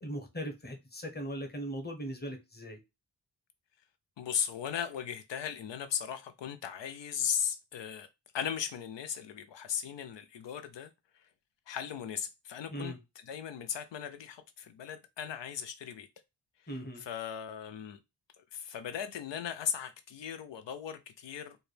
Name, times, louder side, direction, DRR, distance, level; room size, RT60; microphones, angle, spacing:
voice 1, 0.0-2.8 12.7-13.0 16.7-17.0, equal, 25° left, 1.0 m, -39 dB
voice 2, 4.2-8.1 8.3-10.9 11.7-16.1 16.7-18.0 18.5-21.6, left 8 dB, 85° left, 0.6 m, -37 dB
4.4 x 2.2 x 3.2 m
wide cardioid pair, 120°, 42 cm